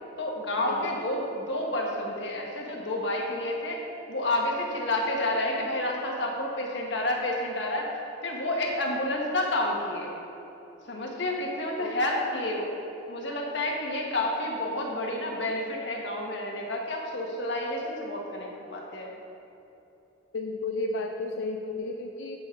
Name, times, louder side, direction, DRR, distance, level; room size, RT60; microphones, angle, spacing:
voice 1, 0.2-3.8 4.1-10.1 10.9-12.7 13.1-19.1, left 1 dB, 70° left, -1 dB, 1.4 m, -30 dB
voice 2, 20.3-22.4, left 2 dB, 90° left, 4 dB, 0.5 m, -32 dB
10.5 x 8.4 x 3.8 m, 3.0 s
head